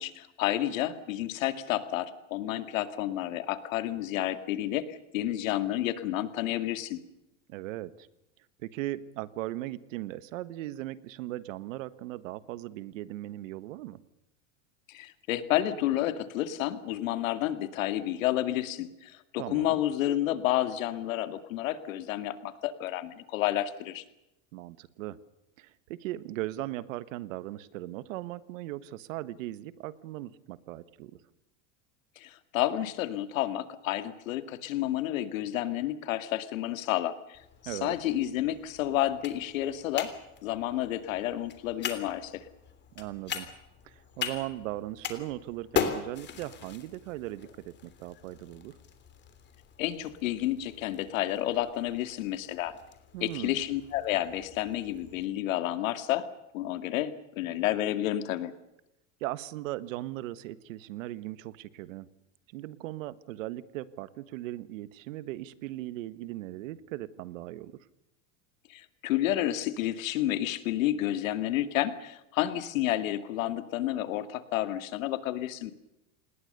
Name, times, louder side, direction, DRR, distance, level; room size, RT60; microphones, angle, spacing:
voice 1, 0.0-7.0 14.9-24.0 32.2-37.4 37.6-40.1 40.4-42.4 49.8-52.7 53.2-56.3 56.5-58.5 68.7-75.7, left 13 dB, 85° left, 10 dB, 2.3 m, -30 dB
voice 2, 7.5-8.1 8.6-14.0 19.4-19.8 24.5-25.2 25.6-31.1 37.6-38.0 42.9-43.5 43.8-48.7 53.1-53.6 59.2-62.1 62.5-67.8, right 15 dB, 80° right, 15 dB, 1.5 m, -38 dB
sound 1, 37.3-55.2, left 8 dB, 25° left, 3.3 m, -40 dB
27.5 x 20.5 x 6.8 m, 0.89 s
supercardioid pair, 150°, 39 cm